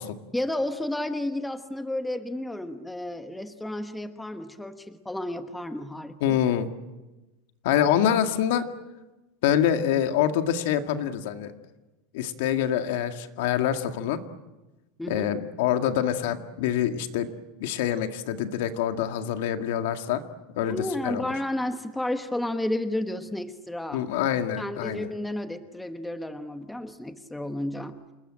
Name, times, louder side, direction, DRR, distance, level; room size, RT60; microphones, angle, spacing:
voice 1, 0.3-6.4 15.0-15.3 20.7-24.0 24.6-28.0, left 1 dB, 5° left, 8 dB, 1.1 m, -32 dB
voice 2, 6.2-6.7 7.6-8.6 9.4-11.5 12.1-14.2 15.1-17.3 17.6-20.2 20.6-21.3 23.9-25.1, left 10 dB, 70° left, 7 dB, 2.0 m, -25 dB
28.5 x 20.5 x 8.9 m, 1.1 s
supercardioid pair, 170°, 0 cm